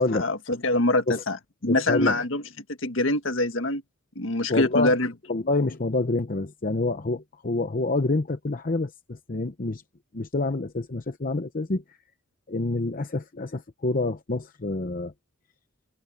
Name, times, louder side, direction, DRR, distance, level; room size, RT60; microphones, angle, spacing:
voice 1, 0.0-1.4 1.6-2.4 2.8-3.8 4.2-5.1, left 2 dB, 70° left, 1.7 m, -24 dB
voice 2, 1.6-2.2 4.5-5.0 5.3-9.8 10.1-11.8 12.5-15.1, left 3 dB, 45° left, 0.8 m, -27 dB
head